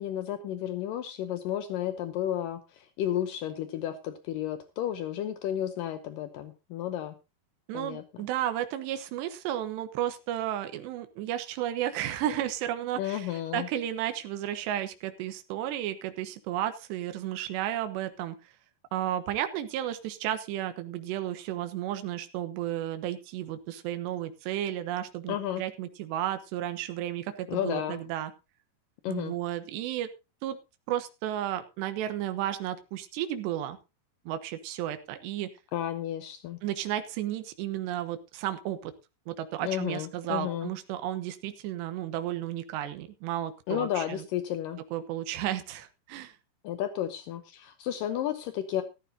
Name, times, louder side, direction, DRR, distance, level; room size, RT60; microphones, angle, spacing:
voice 1, 0.0-7.2 7.7-8.0 13.0-13.7 25.3-25.6 27.5-28.0 29.0-29.3 35.7-36.6 39.6-40.7 43.7-44.8 46.6-48.8, left 11 dB, 80° left, 9 dB, 2.0 m, -32 dB
voice 2, 7.7-13.3 13.5-18.4 18.9-28.3 29.1-30.1 30.4-30.6 30.9-33.8 34.3-35.5 36.6-38.9 39.3-44.2 44.9-46.3, right 12 dB, 80° right, 9 dB, 3.3 m, -33 dB
14.5 x 14.0 x 2.8 m, 0.28 s
omnidirectional pair, 5.0 m